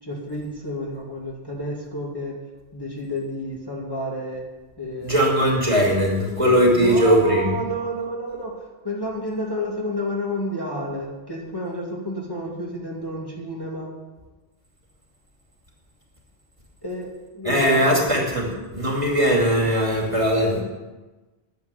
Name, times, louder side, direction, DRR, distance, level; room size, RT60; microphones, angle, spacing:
voice 1, 0.0-2.3 2.7-4.4 4.8-5.5 6.7-8.5 8.8-13.9 16.8-17.9, equal, 20° left, -4 dB, 2.4 m, -30 dB
voice 2, 5.0-7.5 17.4-20.6, equal, 30° right, -2 dB, 2.5 m, -19 dB
10.5 x 7.6 x 9.8 m, 1.2 s
omnidirectional pair, 1.1 m